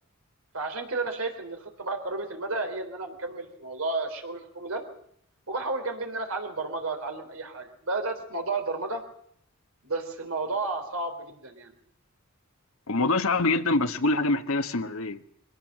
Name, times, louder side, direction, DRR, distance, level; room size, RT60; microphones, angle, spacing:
voice 1, 0.5-4.8 5.5-9.0 9.8-11.7, right 3 dB, 80° right, 3.7 m, -32 dB
voice 2, 12.9-15.2, left 2 dB, 80° left, 1.3 m, -25 dB
22.5 x 17.5 x 7.5 m
head